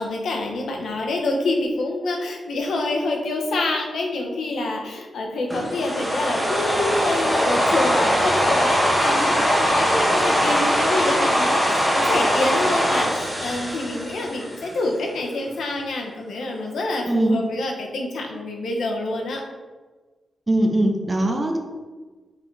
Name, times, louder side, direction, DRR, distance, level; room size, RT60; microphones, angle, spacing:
voice 1, 0.0-19.4, left 2 dB, 80° left, 1 dB, 1.1 m, -27 dB
sound 1, 5.5-14.7, equal, ahead, 1.2 m, -21 dB
voice 2, 17.1-17.4 20.5-21.6, right 1 dB, 20° right, 3 dB, 0.7 m, -21 dB
5.8 x 4.6 x 4.0 m, 1.3 s
wide cardioid pair, 180°, 0 cm